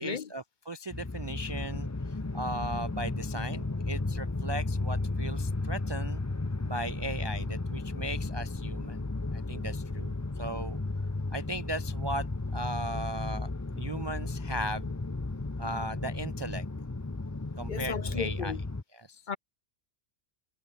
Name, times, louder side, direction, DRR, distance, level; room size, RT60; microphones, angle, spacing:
voice 1, 0.0-1.9 2.3-6.2 6.6-9.0 9.3-10.8 11.3-12.3 12.5-14.9 15.6-16.7 17.6-18.6 18.9-19.2, right 1 dB, 35° right, 0.4 m, -37 dB
sound 1, 0.9-18.8, left 2 dB, 15° left, 0.8 m, -34 dB
voice 2, 17.7-18.6 19.3-19.4, left 6 dB, 50° left, 0.7 m, -35 dB
omnidirectional pair, 1.2 m